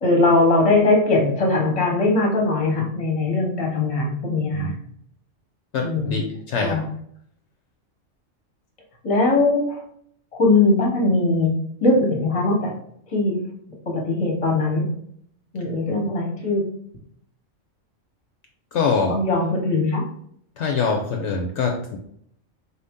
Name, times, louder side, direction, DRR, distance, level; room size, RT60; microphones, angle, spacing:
voice 1, 0.0-4.7 5.8-6.2 6.6-6.8 9.0-9.8 10.3-11.5 11.8-12.7 13.1-13.4 13.9-14.9 15.5-16.6 19.1-20.0, left 2 dB, 30° left, -1 dB, 1.0 m, -20 dB
voice 2, 5.7-6.8 18.7-19.2 20.6-22.0, left 5 dB, 70° left, 1 dB, 0.8 m, -24 dB
4.2 x 2.7 x 3.6 m, 0.68 s
omnidirectional pair, 1.3 m